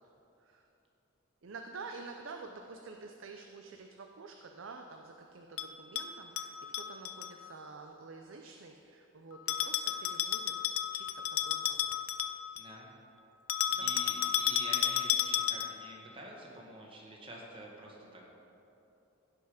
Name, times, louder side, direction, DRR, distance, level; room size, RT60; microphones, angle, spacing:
voice 1, 1.4-10.6 10.9-12.0 13.7-14.0, right 4 dB, 75° right, 4 dB, 0.6 m, -49 dB
Bell, 5.6-7.3 9.5-12.7 13.5-15.9, left 11 dB, 90° left, 0.5 m, -32 dB
voice 2, 12.5-12.9 13.8-18.3, right 1 dB, 25° right, -2 dB, 1.7 m, -47 dB
16.0 x 5.5 x 5.1 m, 2.9 s
head